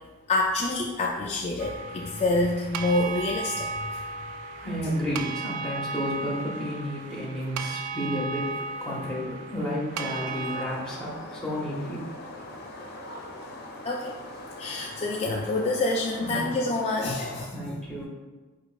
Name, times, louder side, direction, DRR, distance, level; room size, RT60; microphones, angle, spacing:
voice 1, 0.3-3.8 13.8-14.2 14.6-17.5, left 2 dB, 30° left, -2 dB, 0.3 m, -27 dB
sound 1, 1.6-10.7, right 4 dB, 80° right, 0.3 m, -35 dB
voice 2, 4.6-8.5 8.8-12.1 16.2-16.5 17.5-18.1, equal, 5° left, -5 dB, 0.8 m, -32 dB
sound 2, 9.9-17.4, left 1 dB, 45° left, 0.7 m, -42 dB
4.9 x 4.4 x 2.4 m, 1.2 s
head